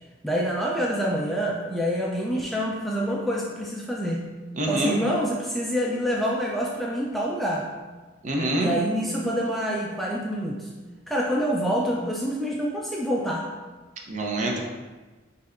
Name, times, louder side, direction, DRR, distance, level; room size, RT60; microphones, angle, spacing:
voice 1, 0.2-4.3 4.7-7.7 8.5-10.7 11.1-13.5, equal, ahead, -3 dB, 0.3 m, -26 dB
voice 2, 4.5-5.0 8.2-8.7 14.1-14.6, right 1 dB, 40° right, 0 dB, 0.6 m, -26 dB
6.2 x 2.7 x 2.5 m, 1.3 s
head